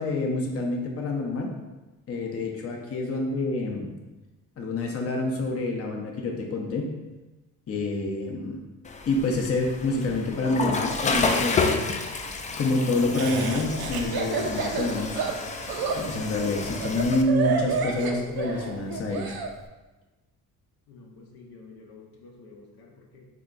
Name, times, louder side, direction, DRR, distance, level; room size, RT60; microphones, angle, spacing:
voice 1, 0.0-1.5 2.1-3.9 4.6-6.9 7.7-8.6 9.1-15.4 15.9-19.4, left 2 dB, 40° left, 0 dB, 0.7 m, -27 dB
Water / Toilet flush, 8.9-17.2, left 4 dB, 20° left, 0.3 m, -30 dB
Laughter, 13.1-19.5, right 5 dB, 70° right, 0.6 m, -29 dB
voice 2, 20.9-23.3, left 3 dB, 70° left, -1 dB, 0.8 m, -49 dB
3.7 x 2.2 x 3.7 m, 1.1 s
cardioid pair, 70°, 37 cm